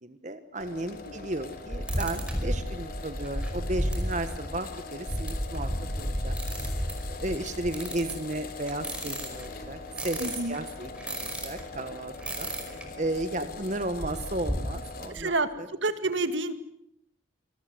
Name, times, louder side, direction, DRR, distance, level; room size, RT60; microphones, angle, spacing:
voice 1, 0.0-5.7 6.0-6.4 6.7-15.7, right 1 dB, 35° right, 9 dB, 1.4 m, -34 dB
sound 1, 0.6-15.3, left 3 dB, 50° left, 3.3 m, -42 dB
sound 2, 1.7-11.7 12.2-12.9 13.2-13.3 13.5-14.7, equal, 5° right, 5.3 m, -33 dB
voice 2, 10.2-10.6 15.1-15.5 15.8-16.5, right 2 dB, 70° right, 10 dB, 2.1 m, -28 dB
27.0 x 21.5 x 8.0 m, 0.72 s
head